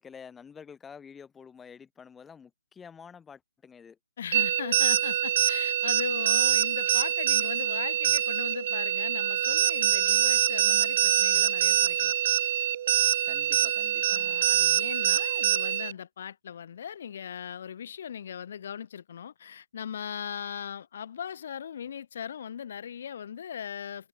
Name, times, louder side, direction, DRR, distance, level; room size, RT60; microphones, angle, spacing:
voice 1, 0.0-4.0 13.2-14.5, left 6 dB, 10° left, 2.7 m, -49 dB
voice 2, 4.2-12.1 14.1-24.1, left 8 dB, 50° left, 3.2 m, -38 dB
sound 1, 4.3-15.9, right 11 dB, 40° right, 0.3 m, -25 dB
figure-of-eight pair, 140°, 0 cm